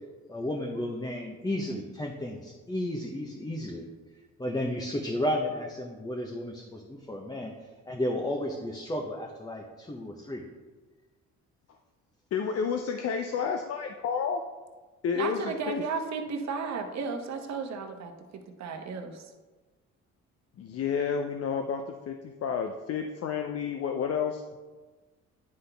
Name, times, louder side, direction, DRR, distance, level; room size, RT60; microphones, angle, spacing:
voice 1, 0.3-3.9 4.4-7.5 7.9-10.4, left 1 dB, 15° left, 0 dB, 0.7 m, -33 dB
voice 2, 12.3-14.4 15.0-15.4 15.7-15.8 20.6-24.4, left 6 dB, 55° left, 5 dB, 0.5 m, -30 dB
voice 3, 15.1-18.1 18.6-19.3, right 5 dB, 65° right, 5 dB, 0.9 m, -34 dB
9.5 x 4.0 x 3.4 m, 1.3 s
cardioid pair, 90°, 30 cm